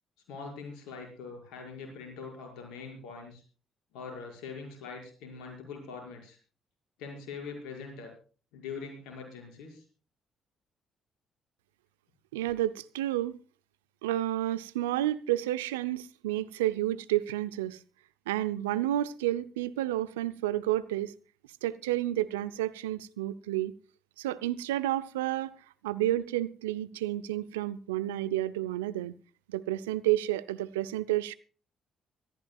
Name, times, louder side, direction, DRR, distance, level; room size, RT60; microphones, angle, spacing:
voice 1, 0.3-3.4 3.9-6.4 7.0-8.1 8.5-9.8, left 5 dB, 75° left, 5.8 m, -43 dB
voice 2, 12.3-13.4 14.0-17.8 18.3-21.1 21.6-23.7 24.2-25.5 25.8-29.1 29.5-31.4, right 14 dB, 85° right, 0.6 m, -30 dB
23.5 x 14.0 x 2.4 m
hypercardioid pair, 45°, 0 cm